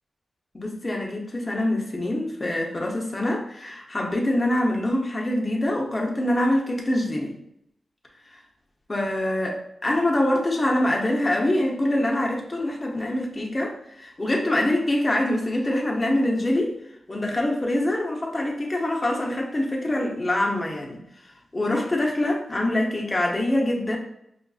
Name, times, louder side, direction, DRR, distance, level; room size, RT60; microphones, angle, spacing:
voice 1, 0.5-7.3 8.9-16.7 17.1-21.0 21.5-24.0, left 1 dB, 25° left, -1 dB, 0.8 m, -24 dB
5.7 x 2.5 x 2.4 m, 0.77 s
wide cardioid pair, 100°, 0 cm